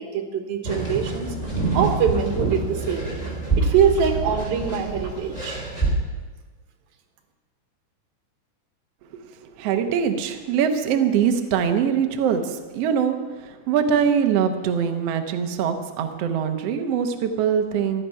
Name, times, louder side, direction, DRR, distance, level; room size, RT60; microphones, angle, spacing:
voice 1, 0.0-1.3 1.7-3.1 3.6-5.6, right 7 dB, 85° right, 6 dB, 3.1 m, -23 dB
sound 1, 0.6-5.9, right 3 dB, 10° left, 2.9 m, -26 dB
voice 2, 9.6-18.0, right 7 dB, 65° right, 6 dB, 1.6 m, -23 dB
15.0 x 11.5 x 5.6 m, 1.3 s
omnidirectional pair, 4.1 m